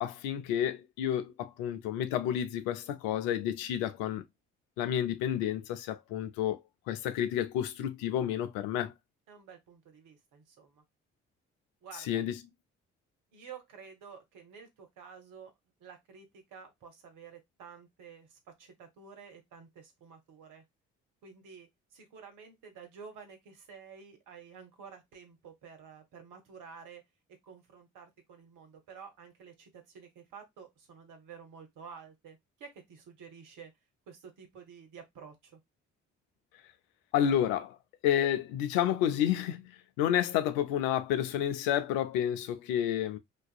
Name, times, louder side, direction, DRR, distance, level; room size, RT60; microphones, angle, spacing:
voice 1, 0.0-4.2 4.8-6.6 6.9-8.9 12.1-12.4 37.1-37.8 38.0-43.2, left 10 dB, 70° left, 0.5 m, -30 dB
voice 2, 9.3-10.8 11.8-12.2 13.3-15.5 15.8-20.6 21.2-27.0 27.4-33.7 34.1-35.6, right 6 dB, 60° right, 0.9 m, -51 dB
2.4 x 2.3 x 2.3 m
figure-of-eight pair, 40°, 35 cm